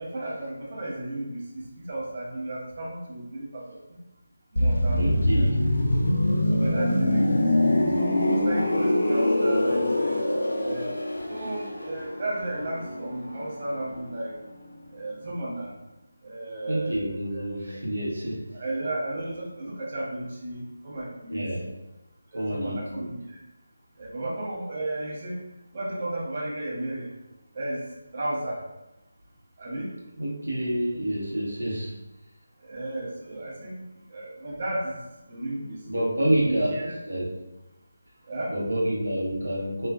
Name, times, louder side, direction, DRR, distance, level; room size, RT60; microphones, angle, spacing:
voice 1, 0.0-4.0 4.5-5.0 5.3-5.4 6.5-7.4 7.9-10.2 10.5-10.9 11.3-14.4 14.9-15.7 16.2-17.7 18.5-21.4 22.3-23.4 24.0-25.4 25.7-27.1 27.5-27.8 28.1-28.6 29.6-29.9 32.6-33.7 34.1-35.0 35.3-35.8 36.5-37.0 38.3-38.5, right 1 dB, 40° right, -3 dB, 0.6 m, -33 dB
sound 1, 4.6-14.2 14.5-14.7, left 1 dB, 85° left, 0.4 m, -24 dB
voice 2, 4.9-5.6 16.7-18.4 21.3-21.7 22.3-23.1 30.2-32.0 35.9-37.4 38.5-39.9, right 1 dB, 85° right, -3 dB, 0.9 m, -28 dB
2.4 x 2.2 x 2.4 m, 0.98 s
figure-of-eight pair, 160°, 0 cm